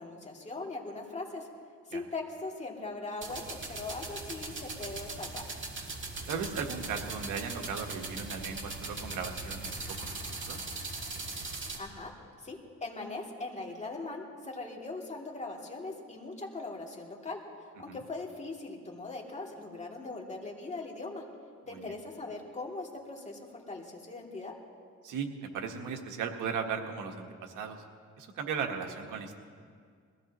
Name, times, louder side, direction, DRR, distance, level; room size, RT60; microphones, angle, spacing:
voice 1, 0.0-1.5 1.9-5.4 11.8-12.1 12.4-17.4 17.8-21.2 21.7-24.5, left 3 dB, 25° left, -2 dB, 2.7 m, -40 dB
sound 1, 3.2-11.8, right 3 dB, 40° right, 2.3 m, -40 dB
voice 2, 6.3-10.6 17.8-18.0 21.7-21.9 25.0-25.3 25.5-27.8 28.2-29.4, right 6 dB, 85° right, 4 dB, 1.4 m, -37 dB
21.5 x 15.5 x 3.0 m, 2.1 s
cardioid pair, 90°, 30 cm